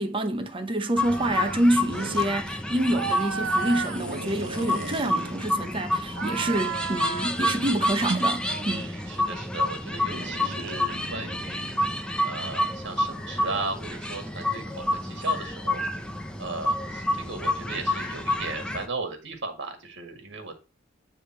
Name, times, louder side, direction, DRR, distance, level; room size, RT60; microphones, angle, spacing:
voice 1, 0.0-8.9, right 1 dB, 25° right, 0.8 m, -27 dB
sound 1, 1.0-18.9, left 1 dB, 5° left, 0.7 m, -29 dB
sound 2, 1.0-1.6 1.9-2.3 2.9-5.7 6.1-7.5 7.9-9.0 10.1-11.9, right 5 dB, 85° right, 1.1 m, -34 dB
voice 2, 8.8-16.1 16.4-20.6, right 3 dB, 65° right, 1.8 m, -36 dB
9.3 x 3.4 x 4.4 m
head